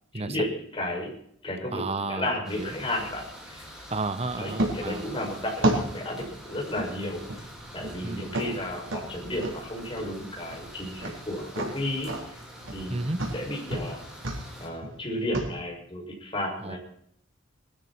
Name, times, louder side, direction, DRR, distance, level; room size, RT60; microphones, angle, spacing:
voice 1, 0.1-1.1 1.4-1.8 2.1-3.7 4.4-7.5 7.7-12.1 12.7-14.0 14.6-16.8, left 1 dB, 25° left, -1 dB, 6.3 m, -33 dB
voice 2, 1.7-2.3 2.6-2.7 3.9-5.1 8.0-8.3 12.9-13.2 16.6-16.8, right 3 dB, 30° right, 11 dB, 1.0 m, -32 dB
sound 1, 2.4-14.7, equal, 5° right, 4.7 m, -46 dB
sound 2, 4.6-15.5, right 1 dB, 85° right, 4.0 m, -33 dB
21.5 x 13.5 x 4.4 m, 0.68 s
head